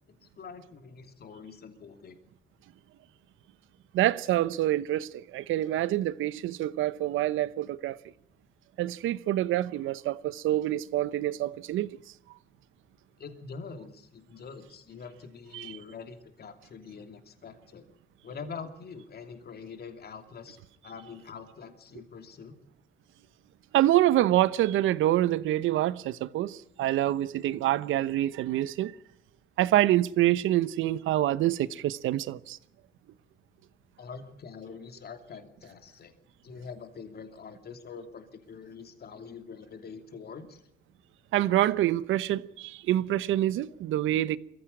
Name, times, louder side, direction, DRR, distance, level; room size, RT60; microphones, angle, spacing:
voice 1, 0.1-2.2 13.2-17.8 18.2-20.6 20.8-22.6 34.0-36.1 36.4-40.6, left 5 dB, 50° left, 2.9 m, -44 dB
voice 2, 3.9-8.0 8.8-12.0 15.5-15.7 23.7-28.9 29.6-32.6 41.3-44.4, right 14 dB, 85° right, 0.9 m, -26 dB
22.0 x 15.0 x 9.9 m
cardioid pair, 90°, 20 cm